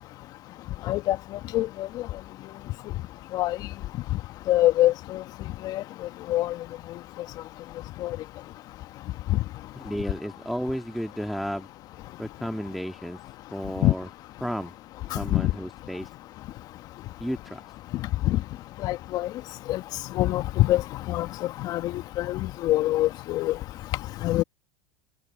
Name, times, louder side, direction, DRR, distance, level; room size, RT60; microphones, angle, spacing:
voice 1, 0.8-2.1 3.3-3.7 4.5-5.2 5.6-6.6 8.0-8.2 9.3-9.4 13.8-13.9 15.1-15.5 17.9-18.4 18.8-19.3 19.7-19.8 20.1-23.6 24.2-24.4, left 15 dB, 50° left, 1.6 m, -25 dB
voice 2, 9.7-11.7 12.2-13.2 13.5-14.1 14.4-14.7 15.1-16.1 17.2-17.7, equal, ahead, 2.5 m, -32 dB
hypercardioid pair, 85°, 8 cm